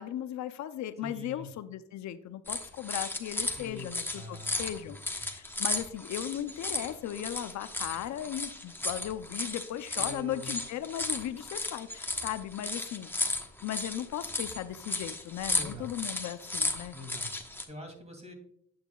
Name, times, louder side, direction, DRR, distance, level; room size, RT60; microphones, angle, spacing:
voice 1, 0.0-13.1 13.6-17.0, left 11 dB, 70° left, 12 dB, 0.5 m, -37 dB
voice 2, 1.0-1.5 3.6-5.3 10.0-10.5 15.5-15.9 16.9-17.4 17.7-18.3, left 1 dB, 20° right, 4 dB, 2.6 m, -45 dB
sound 1, 2.5-17.6, left 2 dB, 5° left, 1.1 m, -35 dB
9.4 x 7.9 x 2.3 m, 0.70 s
cardioid pair, 90°, 30 cm